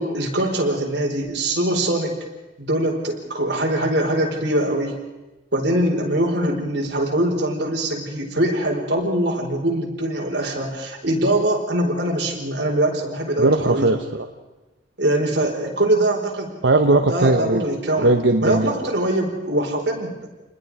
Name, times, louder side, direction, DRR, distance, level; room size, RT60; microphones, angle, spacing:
voice 1, 0.0-2.1 2.6-5.0 5.5-13.9 15.0-16.6 17.1-18.1 18.4-20.3, right 1 dB, 65° right, 0 dB, 4.5 m, -22 dB
voice 2, 13.4-14.3 16.6-17.6 18.0-18.7, right 2 dB, 85° right, 5 dB, 1.1 m, -18 dB
28.0 x 20.5 x 4.9 m, 1.1 s
head